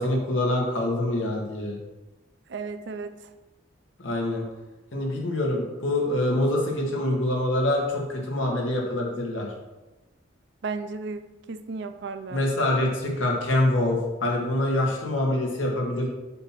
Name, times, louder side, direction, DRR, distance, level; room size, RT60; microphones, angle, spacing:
voice 1, 0.0-1.7 4.0-4.4 4.9-9.5 12.3-16.1, left 1 dB, 85° left, -1 dB, 1.6 m, -25 dB
voice 2, 2.5-3.2 10.6-12.4, right 4 dB, 60° right, 9 dB, 0.5 m, -34 dB
7.7 x 2.9 x 5.9 m, 1.1 s
head